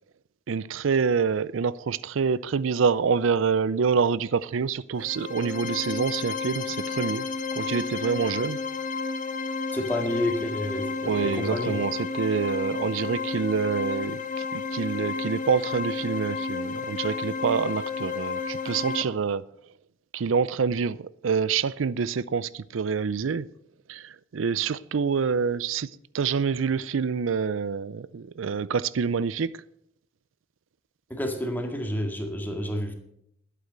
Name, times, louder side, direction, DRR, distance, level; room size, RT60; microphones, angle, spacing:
voice 1, 0.5-7.3 7.6-8.6 11.1-19.4 20.1-23.5 23.9-29.6, right 6 dB, 85° right, 0.5 m, -26 dB
sound 1, 5.0-19.0, left 4 dB, 40° left, 0.9 m, -32 dB
voice 2, 9.7-11.7 31.1-32.9, left 1 dB, 10° left, 1.9 m, -29 dB
12.0 x 8.5 x 7.5 m
head